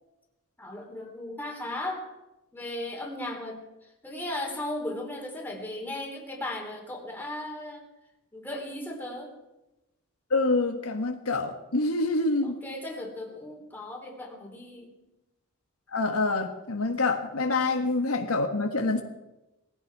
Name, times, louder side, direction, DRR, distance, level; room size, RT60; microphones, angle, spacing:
voice 1, 0.6-2.1 2.5-3.6 4.0-7.8 8.3-9.3 12.4-15.0, left 1 dB, 10° left, 0 dB, 3.3 m, -36 dB
voice 2, 10.3-12.5 15.9-19.0, left 3 dB, 85° left, 4 dB, 1.7 m, -26 dB
20.0 x 15.0 x 4.8 m, 0.97 s
head